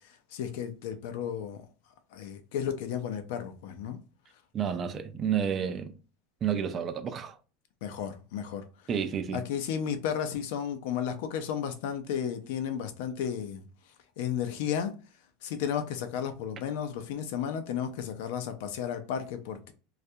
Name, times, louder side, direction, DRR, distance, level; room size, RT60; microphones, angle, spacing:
voice 1, 0.3-1.6 2.1-4.0 7.8-8.6 9.3-13.6 14.2-14.9 15.4-19.7, left 8 dB, 75° left, 0.5 m, -33 dB
voice 2, 4.5-5.9 6.4-7.4 8.9-9.4, right 8 dB, 30° right, 0.3 m, -30 dB
2.3 x 2.2 x 2.7 m
supercardioid pair, 145°, 0 cm